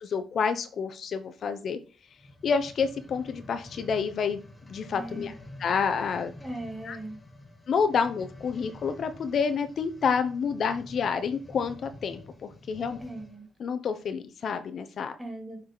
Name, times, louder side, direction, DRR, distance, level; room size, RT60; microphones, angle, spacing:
voice 1, 0.0-1.8 2.4-4.4 4.7-5.3 5.6-6.3 6.8-7.0 7.7-13.0 13.6-15.1, left 6 dB, 55° left, 9 dB, 0.7 m, -29 dB
sound 1, 2.1-13.4 14.1-14.2, left 1 dB, 20° left, 1.3 m, -48 dB
voice 2, 4.8-5.3 6.4-7.2 13.0-13.5 15.2-15.6, right 1 dB, 10° right, 1 dB, 3.2 m, -39 dB
7.3 x 4.8 x 3.9 m, 0.35 s
cardioid pair, 90°, 0 cm